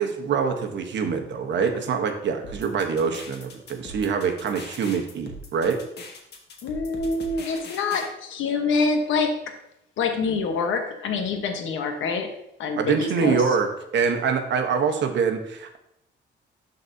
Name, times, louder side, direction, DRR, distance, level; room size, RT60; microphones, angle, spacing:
voice 1, 0.0-5.8 12.8-15.8, right 6 dB, 65° right, 5 dB, 1.0 m, -25 dB
sound 1, 2.4-8.1, left 2 dB, 55° left, 1.4 m, -41 dB
voice 2, 6.6-9.3 10.0-12.3 12.6-13.4, left 4 dB, 80° left, 5 dB, 1.1 m, -26 dB
12.0 x 4.0 x 2.7 m, 0.81 s
cardioid pair, 90°, 20 cm